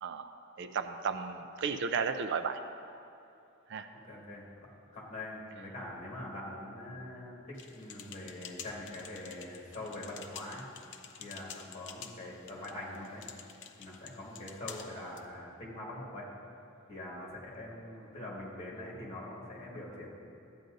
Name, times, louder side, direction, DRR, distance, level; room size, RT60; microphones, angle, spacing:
voice 1, 0.0-2.6 3.7-3.9, right 5 dB, 60° right, 9 dB, 0.4 m, -34 dB
voice 2, 3.9-10.6 11.2-13.2 13.8-16.3 16.9-20.1, left 1 dB, 35° left, -5 dB, 2.0 m, -43 dB
sound 1, 7.6-15.2, left 8 dB, 60° left, 0.6 m, -49 dB
14.0 x 9.3 x 2.6 m, 2.7 s
head